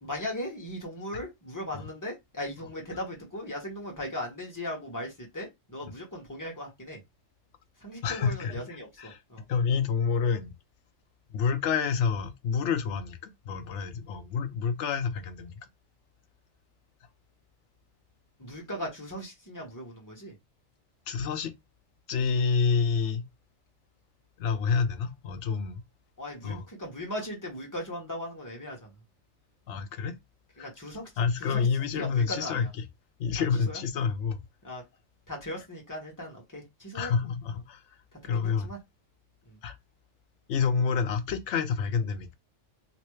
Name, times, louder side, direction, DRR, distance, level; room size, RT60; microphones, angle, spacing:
voice 1, 0.0-7.0 7.8-9.4 18.4-20.4 26.2-28.9 30.6-31.1 31.4-31.7 31.9-32.7 33.4-33.8 34.6-34.8 35.3-37.1 38.3-38.8 39.4-39.6, left 1 dB, 15° left, 1.3 m, -38 dB
voice 2, 8.0-8.6 9.0-9.2 9.5-10.5 11.3-15.5 21.1-21.5 22.1-23.3 24.4-25.8 26.4-26.6 29.7-30.1 30.6-30.7 31.2-32.7 33.2-34.4 36.9-37.8 38.2-38.7 39.6-39.8 40.5-42.3, left 6 dB, 70° left, 0.9 m, -28 dB
3.1 x 3.0 x 3.1 m
omnidirectional pair, 1.3 m